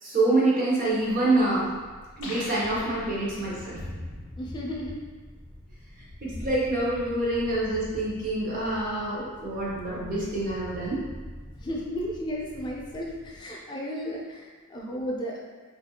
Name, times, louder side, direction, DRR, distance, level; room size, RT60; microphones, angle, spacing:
voice 1, 0.0-1.7 2.2-3.8 6.2-11.0, right 2 dB, 40° right, -6 dB, 0.8 m, -26 dB
Thunder, 0.9-13.5, left 1 dB, 80° right, 1.2 m, -44 dB
sound 1, 2.2-3.8, left 2 dB, 75° left, 0.6 m, -41 dB
voice 2, 4.4-5.0 11.6-15.5, equal, 20° left, -2 dB, 0.4 m, -34 dB
3.1 x 2.5 x 2.7 m, 1.4 s
head